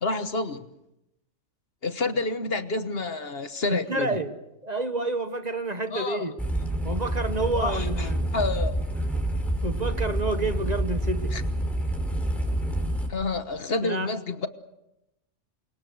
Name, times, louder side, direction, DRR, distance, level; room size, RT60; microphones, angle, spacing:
voice 1, 0.0-0.7 1.8-4.2 5.9-6.2 7.5-8.8 11.3-11.4 13.1-14.5, left 3 dB, 55° left, 1.5 m, -29 dB
voice 2, 3.7-4.4 4.6-6.4 6.8-8.3 9.1-9.2 9.6-11.3 13.8-14.1, right 2 dB, 35° right, 1.6 m, -29 dB
sound 1, 6.4-13.1, right 1 dB, ahead, 5.2 m, -28 dB
29.0 x 24.5 x 6.5 m
omnidirectional pair, 1.2 m